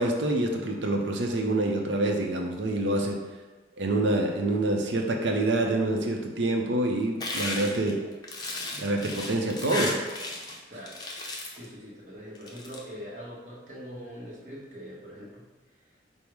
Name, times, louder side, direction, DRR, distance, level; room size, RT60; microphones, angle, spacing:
voice 1, 0.0-3.2 3.8-8.1 8.7-10.0, right 2 dB, 80° right, 2 dB, 0.6 m, -26 dB
sound 1, 7.2-10.6 10.9-11.6 12.3-12.8, left 2 dB, 20° left, 0.5 m, -34 dB
voice 2, 11.6-15.4, equal, 45° right, -5 dB, 1.1 m, -42 dB
5.4 x 2.0 x 4.6 m, 1.2 s
head